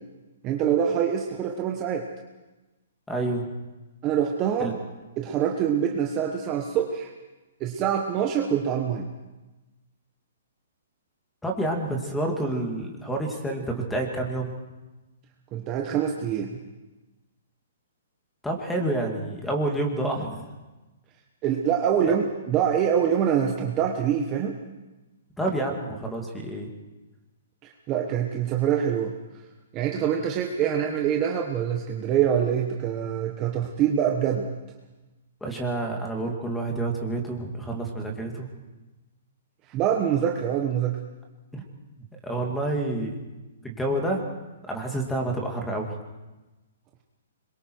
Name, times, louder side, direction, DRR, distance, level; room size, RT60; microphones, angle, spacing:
voice 1, 0.4-2.1 4.0-4.7 5.2-7.1 7.6-9.1 15.5-16.6 21.4-24.6 27.9-29.1 29.7-34.5 39.7-41.0, right 8 dB, 20° right, 2 dB, 1.2 m, -25 dB
voice 2, 3.1-3.5 4.6-4.7 11.4-14.5 18.4-20.4 25.4-26.7 35.4-38.5 41.5-41.6 42.2-43.2 43.6-44.3 44.7-45.9, right 2 dB, 5° left, 2 dB, 2.2 m, -28 dB
25.5 x 22.5 x 4.7 m, 1.1 s
hypercardioid pair, 170°, 0 cm